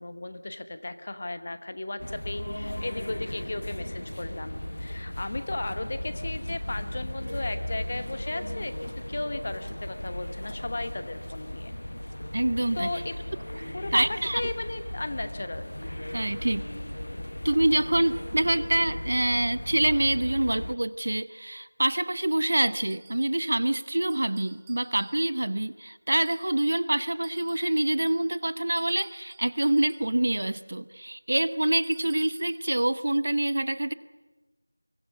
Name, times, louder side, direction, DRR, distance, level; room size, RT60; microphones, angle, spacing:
voice 1, 0.0-11.7 12.7-13.1 13.7-14.0 14.3-15.8, left 2 dB, 25° left, 10 dB, 1.0 m, -35 dB
sound 1, 2.0-20.8, left 1 dB, 75° left, 1.0 m, -36 dB
sound 2, 3.2-3.7 4.0-4.4 4.7-5.2 5.5-7.8 8.0-10.9 11.2-11.7 12.0-12.5 12.8-14.1 14.4-14.8 15.1-15.7 16.0-16.6 16.8-18.9, equal, 85° right, 5.8 m, -55 dB
voice 2, 12.3-12.9 13.9-14.4 16.1-16.7 17.4-33.9, right 1 dB, 40° right, 16 dB, 0.7 m, -26 dB
sound 3, 22.9-23.7 24.1-25.5 26.1-26.8 27.2-30.2 31.7-32.6, right 7 dB, 5° right, 0.7 m, -55 dB
23.0 x 17.0 x 9.8 m, 1.2 s
figure-of-eight pair, 180°, 0 cm